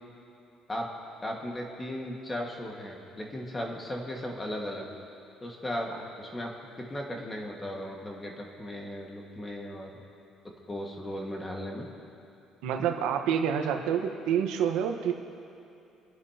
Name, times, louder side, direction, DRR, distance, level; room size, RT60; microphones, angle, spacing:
voice 1, 1.2-4.9 5.4-6.5 6.8-10.0 10.7-11.9, left 1 dB, 15° left, -1 dB, 1.8 m, -36 dB
voice 2, 12.6-15.1, right 8 dB, 90° right, 4 dB, 1.3 m, -27 dB
28.0 x 10.5 x 2.9 m, 2.8 s
cardioid pair, 150°, 0 cm